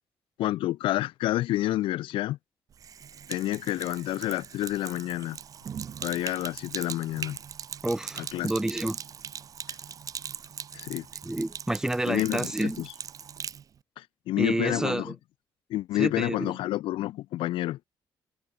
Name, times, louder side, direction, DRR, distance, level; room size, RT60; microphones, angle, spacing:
voice 1, 0.4-2.4 3.3-5.4 6.0-7.4 8.2-8.5 10.7-11.1 12.1-12.9 14.0-15.1 15.7-17.8, left 15 dB, 85° left, 0.6 m, -29 dB
Sink (filling or washing), 2.7-13.6, right 8 dB, 40° right, 3.0 m, -40 dB
voice 2, 7.8-9.0 11.2-12.9 14.4-15.1 16.0-16.5, right 1 dB, 5° right, 1.0 m, -29 dB
cardioid pair, 155°, 9 cm